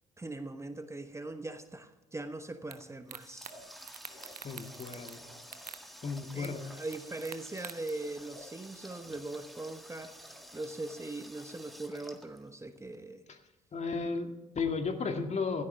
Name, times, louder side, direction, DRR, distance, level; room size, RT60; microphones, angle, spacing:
voice 1, 0.2-3.5 6.3-13.2, right 2 dB, 15° right, 9 dB, 1.1 m, -41 dB
sound 1, 2.7-2.8 3.1-3.5 3.8-5.2 5.4-5.8 6.4-6.5 6.9-7.9, right 7 dB, 90° right, 0.7 m, -45 dB
Water tap faucet, 2.8-13.0, equal, ahead, 1.8 m, -51 dB
sound 2, 3.5-6.0 6.4-7.1 7.5-10.9, left 1 dB, 85° left, 4.9 m, -58 dB
voice 2, 4.4-5.2 6.0-6.6 13.3-13.4 13.7-15.6, left 4 dB, 35° left, 5 dB, 2.1 m, -34 dB
16.0 x 13.5 x 3.4 m, 1.1 s
figure-of-eight pair, 50°, 19 cm